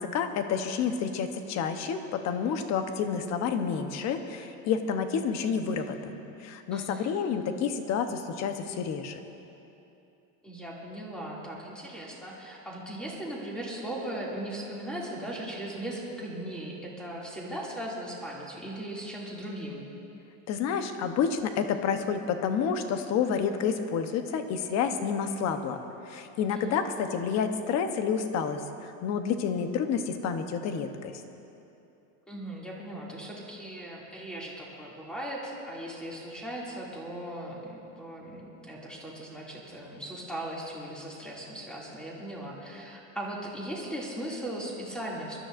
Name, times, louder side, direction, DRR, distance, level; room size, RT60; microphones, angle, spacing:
voice 1, 0.0-9.2 20.5-25.8 26.1-31.2, left 6 dB, 45° left, 7 dB, 0.9 m, -29 dB
voice 2, 6.7-7.1 10.4-19.8 26.5-26.8 32.3-45.4, right 1 dB, ahead, -5 dB, 2.4 m, -38 dB
25.0 x 13.0 x 2.6 m, 2.9 s
cardioid pair, 150°, 37 cm